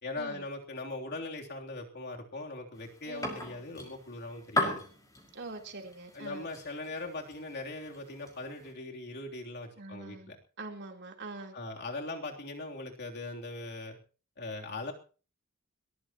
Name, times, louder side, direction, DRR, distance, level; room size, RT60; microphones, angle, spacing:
voice 1, 0.0-4.8 6.1-10.4 11.5-14.0 14.4-14.9, left 2 dB, 50° left, 1 dB, 3.2 m, -40 dB
sound 1, 2.8-8.7, left 1 dB, 15° left, 5.4 m, -38 dB
voice 2, 5.3-6.5 9.8-10.3 10.6-11.6, right 3 dB, 50° right, 2 dB, 3.6 m, -44 dB
21.5 x 20.5 x 3.0 m, 0.38 s
head